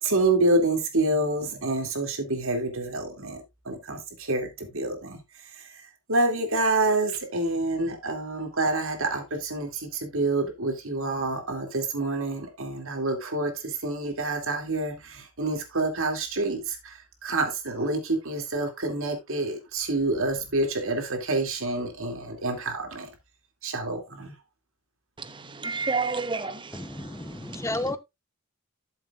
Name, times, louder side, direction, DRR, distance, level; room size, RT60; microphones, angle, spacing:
voice 1, 0.0-5.2 6.1-23.1 23.6-24.3, right 2 dB, 65° right, 2.4 m, -27 dB
voice 2, 25.2-27.9, right 4 dB, 20° right, 0.9 m, -32 dB
voice 3, 26.7-28.0, left 1 dB, 15° left, 0.7 m, -32 dB
12.0 x 7.3 x 2.4 m
head